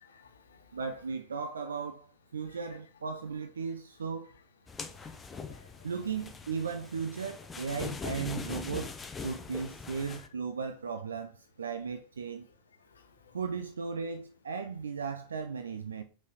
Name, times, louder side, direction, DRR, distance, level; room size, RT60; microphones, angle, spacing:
voice 1, 0.0-0.8 4.9-5.9 10.0-10.2 12.9-13.4, left 5 dB, 70° left, 0.9 m, -59 dB
voice 2, 0.7-4.3 5.8-8.9 9.2-12.5 13.3-16.0, right 5 dB, 70° right, 0.5 m, -36 dB
sound 1, 4.7-10.3, left 4 dB, 15° left, 0.7 m, -42 dB
5.5 x 4.7 x 3.9 m
figure-of-eight pair, 90°, 0 cm